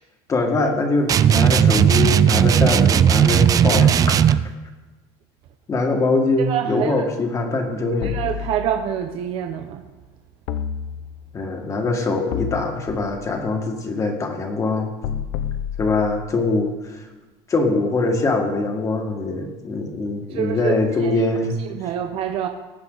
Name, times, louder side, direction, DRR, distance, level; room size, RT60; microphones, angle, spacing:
voice 1, 0.3-4.4 5.7-8.1 11.3-14.9 15.8-17.1 17.5-21.6, left 3 dB, 25° left, 3 dB, 1.8 m, -23 dB
sound 1, 1.1-4.5, right 9 dB, 30° right, 0.4 m, -16 dB
voice 2, 6.4-7.1 8.0-9.8 20.3-21.2 21.7-22.5, right 9 dB, 50° right, 6 dB, 0.8 m, -26 dB
sound 2, 8.0-9.1 10.5-11.4 12.3-13.4 15.0-16.5, left 9 dB, 70° left, 0.8 m, -30 dB
18.5 x 8.1 x 3.9 m, 1.2 s
cardioid pair, 135°, 12 cm